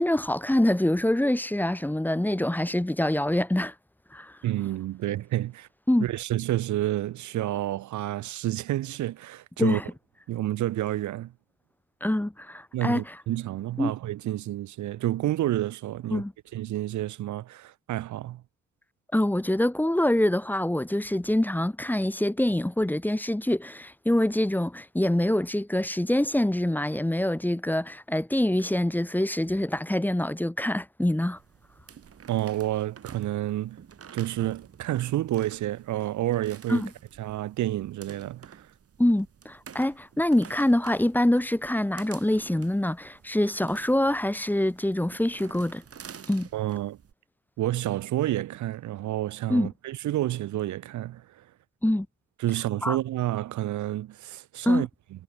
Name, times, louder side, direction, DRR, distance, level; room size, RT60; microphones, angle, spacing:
voice 1, 0.0-3.7 4.1-4.3 5.9-6.1 9.6-9.8 12.0-13.1 13.8-13.9 16.1-16.3 19.1-31.4 36.7-36.9 39.0-45.8 46.3-46.5 49.5-49.7 51.8-52.1 52.8-53.0 54.6-54.9, left 1 dB, 5° left, 1.3 m, -25 dB
voice 2, 4.4-5.7 6.0-9.8 10.3-11.3 12.7-16.2 16.5-18.4 32.3-33.8 34.1-36.9 37.2-38.7 46.5-47.0 47.6-51.4 52.4-54.9, right 14 dB, 75° right, 1.1 m, -29 dB
sound 1, 31.3-47.1, right 7 dB, 50° right, 7.6 m, -49 dB
cardioid pair, 90°, 30 cm